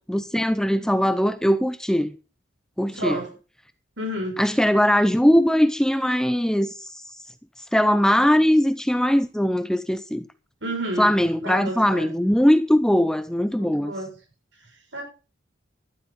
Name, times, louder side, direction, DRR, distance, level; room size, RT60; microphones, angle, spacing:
voice 1, 0.1-2.1 2.8-3.2 4.4-7.0 7.7-10.3 11.0-13.9, equal, 5° left, 0.6 m, -20 dB
voice 2, 2.9-3.3 4.0-4.4 10.6-11.1 11.4-12.1 13.6-14.1 14.9-15.0, right 1 dB, 70° right, 7.3 m, -30 dB
12.5 x 12.0 x 4.3 m
head